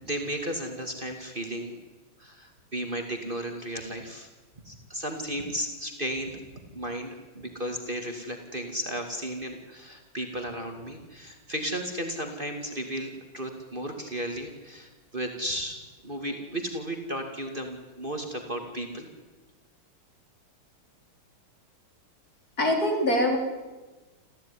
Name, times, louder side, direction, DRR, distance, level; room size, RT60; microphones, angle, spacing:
voice 1, 0.0-1.7 2.2-4.3 4.6-15.8 16.0-19.1, right 1 dB, 25° right, 4 dB, 2.6 m, -34 dB
voice 2, 22.6-23.4, left 1 dB, 45° left, 3 dB, 4.4 m, -23 dB
28.0 x 15.0 x 9.9 m, 1.2 s
omnidirectional pair, 2.2 m